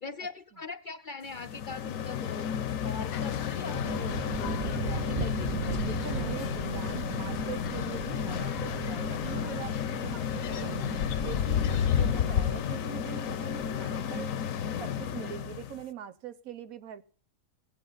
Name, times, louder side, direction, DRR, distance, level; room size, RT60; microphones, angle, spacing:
voice 1, 0.0-5.5, left 4 dB, 50° left, 9 dB, 0.6 m, -42 dB
sound 1, 1.3-15.8, left 8 dB, 70° left, 1.1 m, -33 dB
sound 2, 3.1-12.6, left 9 dB, 90° left, 1.4 m, -34 dB
sound 3, 3.4-14.4, right 8 dB, 50° right, 0.7 m, -39 dB
voice 2, 5.9-10.7 11.2-14.3 14.8-17.0, right 10 dB, 85° right, 12 dB, 1.3 m, -42 dB
18.5 x 8.4 x 4.0 m, 0.42 s
omnidirectional pair, 1.4 m